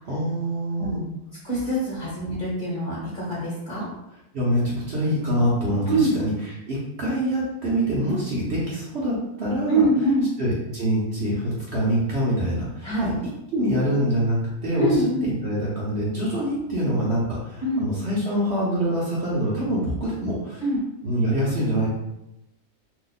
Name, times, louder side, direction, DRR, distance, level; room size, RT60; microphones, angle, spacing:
voice 1, 0.0-1.0 4.3-9.9 10.4-13.1 13.5-20.6 21.0-21.9, equal, 55° right, -6 dB, 0.9 m, -25 dB
voice 2, 1.4-3.8 5.9-6.2 9.7-10.3 12.8-13.1 14.8-15.2 17.6-17.8 20.6-20.8, right 1 dB, 35° left, -6 dB, 1.0 m, -24 dB
2.8 x 2.2 x 3.9 m, 0.88 s
omnidirectional pair, 1.6 m